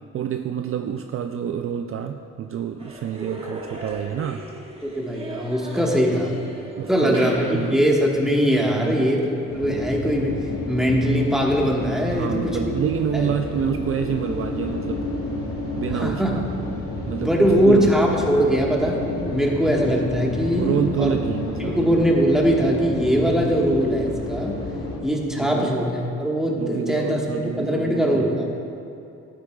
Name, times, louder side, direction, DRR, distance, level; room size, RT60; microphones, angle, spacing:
voice 1, 0.1-4.5 6.1-6.3 6.8-7.8 8.7-9.1 12.1-15.1 15.8-16.4 17.1-18.2 20.6-21.8 25.3-25.7 26.6-28.5, right 8 dB, 45° right, 6 dB, 0.4 m, -28 dB
sound 1, 2.8-10.1, right 2 dB, 20° right, 1.3 m, -39 dB
voice 2, 4.8-6.4 6.9-12.7 13.1-13.3 15.9-16.5 17.2-19.0 19.3-21.1 21.6-24.5 25.0-25.9 26.2-28.5, equal, ahead, -2 dB, 1.4 m, -21 dB
sound 2, 9.5-25.0, left 2 dB, 45° left, 2.0 m, -30 dB
12.0 x 9.9 x 2.3 m, 2.7 s
cardioid pair, 90°, 30 cm